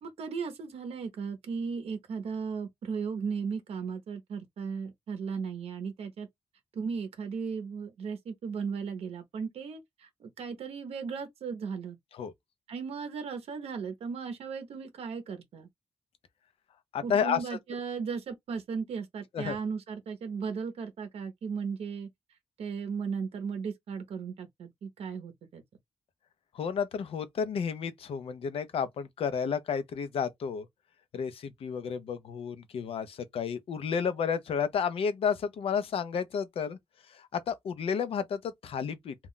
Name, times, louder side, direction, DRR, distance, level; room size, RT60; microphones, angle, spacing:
voice 1, 0.0-6.3 6.7-12.0 12.7-15.7 17.0-22.1 22.6-25.6, right 5 dB, 85° right, 0.6 m, -36 dB
voice 2, 16.9-17.4 19.3-19.6 26.5-30.7 31.1-36.8 37.1-39.1, left 7 dB, 70° left, 0.5 m, -31 dB
2.2 x 2.1 x 3.7 m
wide cardioid pair, 175°, 10 cm